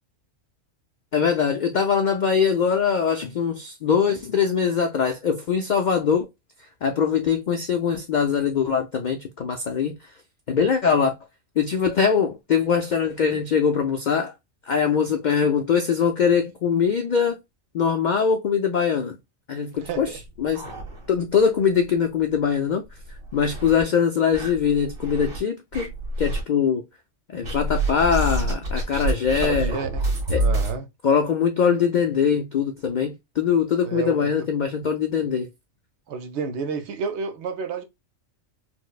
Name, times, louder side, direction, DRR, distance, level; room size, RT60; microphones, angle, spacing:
voice 1, 1.1-6.3 6.8-10.0 10.5-11.1 11.6-14.3 14.7-17.4 17.7-19.2 19.5-20.1 20.4-20.6 21.1-22.8 23.3-25.9 26.2-26.8 27.3-29.8 30.3-30.5 31.0-35.5, left 7 dB, 85° left, 0.4 m, -22 dB
voice 2, 19.7-20.2 29.4-30.1 30.4-30.9 33.8-34.3 36.1-37.8, right 5 dB, 65° right, 0.8 m, -30 dB
sound 1, 19.8-21.4 21.7-21.8 22.2-22.3 22.9-23.8 24.3-25.4 25.7-26.4 27.4-30.8, right 1 dB, 85° right, 1.9 m, -27 dB
4.5 x 2.1 x 2.3 m
omnidirectional pair, 1.3 m